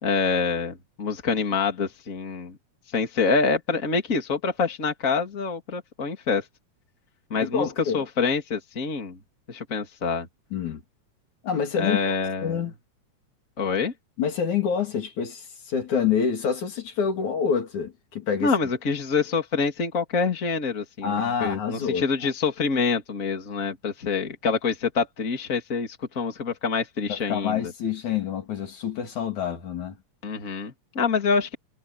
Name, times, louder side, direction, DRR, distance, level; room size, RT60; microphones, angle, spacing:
voice 1, 0.0-2.6 2.9-6.4 7.3-9.2 9.5-10.3 11.8-12.6 13.6-13.9 18.4-27.7 30.2-31.5, left 5 dB, 25° left, 2.9 m, -26 dB
voice 2, 7.4-8.0 10.5-10.8 11.4-12.1 12.4-12.7 14.2-18.5 21.0-22.0 27.1-30.0, left 7 dB, 75° left, 4.5 m, -27 dB
omnidirectional pair, 3.4 m